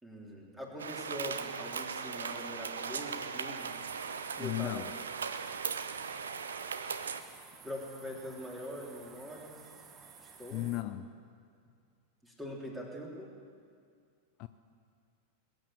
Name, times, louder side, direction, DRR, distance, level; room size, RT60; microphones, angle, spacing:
voice 1, 0.0-3.7 4.4-4.8 7.6-9.6 10.2-10.7 12.2-13.3, equal, 5° right, -2 dB, 3.3 m, -43 dB
sound 1, 0.8-7.2, right 6 dB, 70° right, 0.7 m, -38 dB
sound 2, 3.6-10.8, right 6 dB, 25° right, 1.3 m, -54 dB
voice 2, 4.4-4.9 10.5-11.1 14.4-14.5, left 16 dB, 40° left, 11 dB, 0.5 m, -35 dB
21.0 x 8.7 x 7.7 m, 2.3 s
figure-of-eight pair, 90°, 0 cm